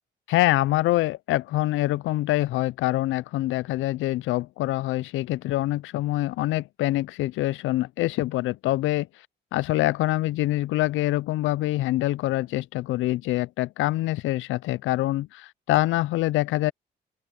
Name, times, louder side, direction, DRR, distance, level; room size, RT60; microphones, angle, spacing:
voice 1, 0.3-9.1 9.5-16.7, left 16 dB, 85° left, 0.5 m, -25 dB
open air
cardioid pair, 90°, 20 cm